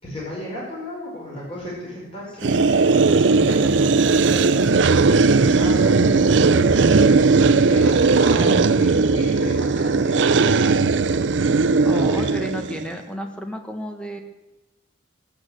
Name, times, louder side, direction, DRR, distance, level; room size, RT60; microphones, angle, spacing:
voice 1, 0.0-12.3 12.6-12.7, left 1 dB, 30° left, -5 dB, 5.2 m, -34 dB
sound 1, 2.4-12.9, right 4 dB, 70° right, 0.5 m, -17 dB
voice 2, 11.8-14.2, equal, 5° left, 4 dB, 1.4 m, -33 dB
16.5 x 8.8 x 8.0 m, 1.0 s
head